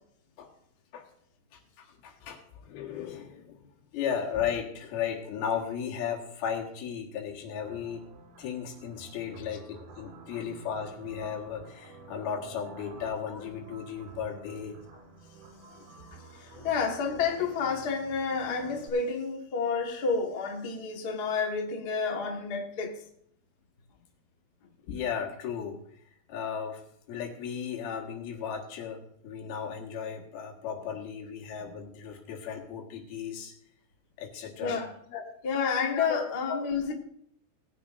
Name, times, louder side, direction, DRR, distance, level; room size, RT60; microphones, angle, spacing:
voice 1, 1.8-3.6 3.9-8.0 8.4-14.8 16.0-16.1 16.5-16.7 24.9-25.8 26.3-26.8 27.1-33.5 34.2-34.8 35.1-35.2 35.9-36.6 36.9-37.0, left 7 dB, 75° left, 3.5 m, -35 dB
sound 1, 7.6-18.9, right 3 dB, 65° right, 3.8 m, -50 dB
voice 2, 16.1-23.0 34.6-34.9 35.4-36.9, left 5 dB, 60° left, 1.0 m, -30 dB
19.0 x 10.0 x 2.6 m
omnidirectional pair, 4.5 m